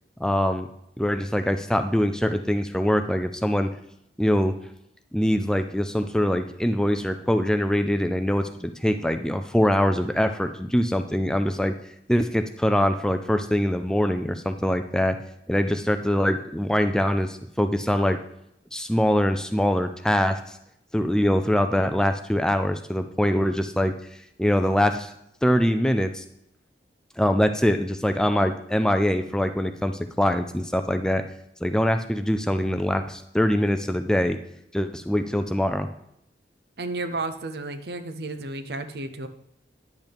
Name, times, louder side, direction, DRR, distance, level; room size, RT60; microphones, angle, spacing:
voice 1, 0.2-0.7 1.0-3.7 4.2-4.5 5.1-11.7 12.1-15.2 15.5-18.2 18.7-20.4 20.9-23.9 24.4-25.1 25.4-26.2 27.2-31.2 31.6-34.4 34.7-35.9, equal, 5° left, 8 dB, 0.4 m, -23 dB
voice 2, 36.8-39.3, right 2 dB, 65° right, 9 dB, 0.7 m, -32 dB
10.5 x 8.0 x 3.5 m, 0.78 s
head